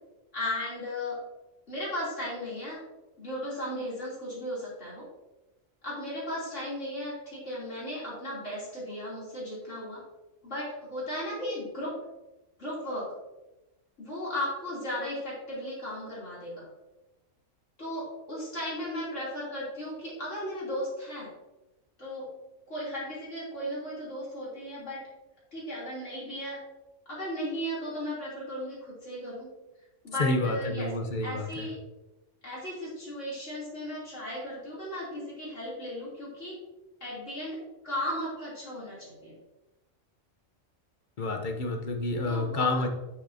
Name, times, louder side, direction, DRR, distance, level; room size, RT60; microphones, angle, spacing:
voice 1, 0.3-1.2 1.7-2.8 3.2-5.1 5.8-10.0 10.4-11.9 12.6-13.1 14.0-16.7 17.8-21.3 22.0-22.3 22.7-25.0 25.5-26.6 27.1-29.5 30.0-30.9 31.2-31.7 32.4-36.5 37.0-37.6 37.8-39.3 42.2-42.9, equal, 70° left, -7 dB, 3.4 m, -36 dB
voice 2, 30.2-31.7 41.2-42.9, left 2 dB, 45° left, 5 dB, 0.9 m, -29 dB
8.3 x 6.7 x 2.7 m, 1.0 s
omnidirectional pair, 1.3 m